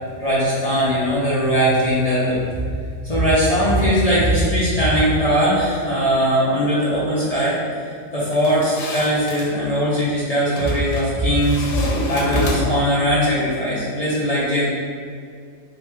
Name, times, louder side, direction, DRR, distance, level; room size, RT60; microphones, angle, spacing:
voice 1, 0.2-2.5 3.0-11.7 12.1-14.7, equal, 45° left, -9 dB, 0.5 m, -19 dB
sound 1, 8.3-9.5 10.6-11.1 11.4-12.9, left 1 dB, 75° left, 1.2 m, -28 dB
3.9 x 2.4 x 4.5 m, 2.2 s
omnidirectional pair, 1.8 m